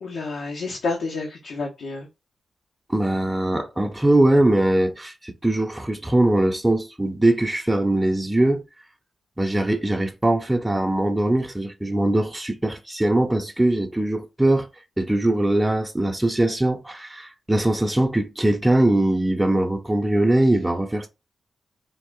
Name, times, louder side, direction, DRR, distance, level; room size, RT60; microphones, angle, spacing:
voice 1, 0.0-2.1, left 3 dB, 80° left, 0.8 m, -29 dB
voice 2, 2.9-8.6 9.4-14.7 15.0-21.1, right 1 dB, 10° right, 0.8 m, -21 dB
3.8 x 2.4 x 3.7 m
supercardioid pair, 45°, 0 cm